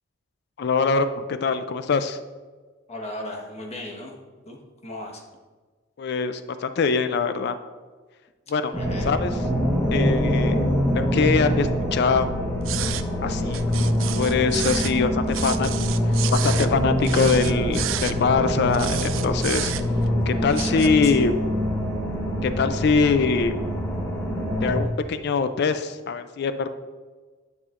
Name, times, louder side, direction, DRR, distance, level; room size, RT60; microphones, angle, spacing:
voice 1, 0.6-2.2 6.0-7.5 8.5-8.7 9.0-9.3 9.9-10.6 10.9-12.3 13.2-15.7 16.3-19.7 20.3-21.3 22.4-23.5 24.6-26.7, left 5 dB, 60° left, 10 dB, 0.4 m, -23 dB
voice 2, 2.9-4.1 4.5-5.2 8.7-9.1 20.7-21.2, left 1 dB, 35° left, 0 dB, 1.3 m, -36 dB
sound 1, 8.7-24.8, equal, 15° left, 1.3 m, -24 dB
sound 2, 12.6-13.1 13.5-15.0 15.3-16.7 17.0-18.1 18.7-20.1 20.5-20.9, right 13 dB, 80° right, 0.4 m, -31 dB
9.6 x 6.8 x 2.5 m, 1.4 s
head